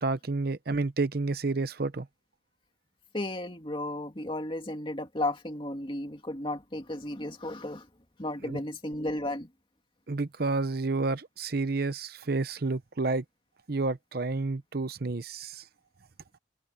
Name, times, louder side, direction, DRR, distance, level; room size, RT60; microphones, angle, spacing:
voice 1, 0.0-2.1 8.4-8.6 10.1-13.2 13.7-15.6, right 3 dB, 55° right, 0.8 m, -30 dB
voice 2, 3.1-7.9 8.2-9.5, left 1 dB, 25° left, 2.5 m, -34 dB
head